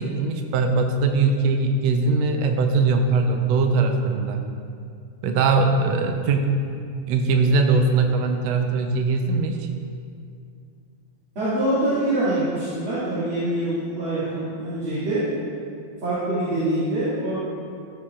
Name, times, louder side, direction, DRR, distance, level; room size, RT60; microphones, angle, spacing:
voice 1, 0.0-4.4 5.2-6.5 7.1-9.7, right 3 dB, 75° right, 4 dB, 1.6 m, -21 dB
voice 2, 11.4-15.2 16.0-17.4, right 1 dB, 45° right, -14 dB, 2.7 m, -24 dB
14.0 x 7.2 x 2.4 m, 2.4 s
omnidirectional pair, 3.7 m